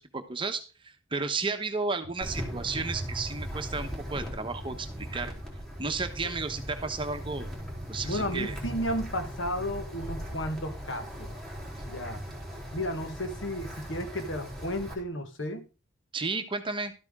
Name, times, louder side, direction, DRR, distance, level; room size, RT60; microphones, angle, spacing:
voice 1, 0.0-5.3 5.8-7.5 7.9-8.6 16.1-16.9, right 4 dB, 25° right, 1.1 m, -33 dB
Wind, 2.2-14.9, equal, ahead, 3.6 m, -38 dB
voice 2, 8.0-11.3 11.9-12.2 12.7-15.7, equal, 70° left, 1.4 m, -33 dB
12.5 x 8.7 x 3.7 m
head